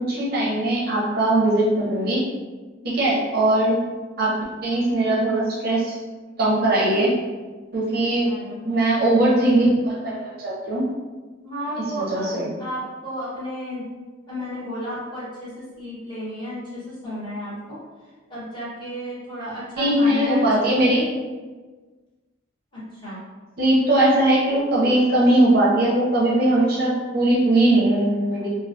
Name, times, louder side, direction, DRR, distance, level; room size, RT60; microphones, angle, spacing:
voice 1, 0.0-2.2 2.8-3.8 4.2-4.3 4.6-6.0 6.4-7.2 7.7-8.3 8.6-10.8 12.0-12.5 19.8-21.1 23.6-28.5, right 1 dB, 50° right, -5 dB, 0.5 m, -20 dB
voice 2, 7.9-8.7 11.4-12.3 12.6-13.9 14.3-17.8 18.3-20.4 22.7-23.2, equal, 25° left, -10 dB, 1.0 m, -33 dB
2.2 x 2.1 x 2.6 m, 1.3 s
head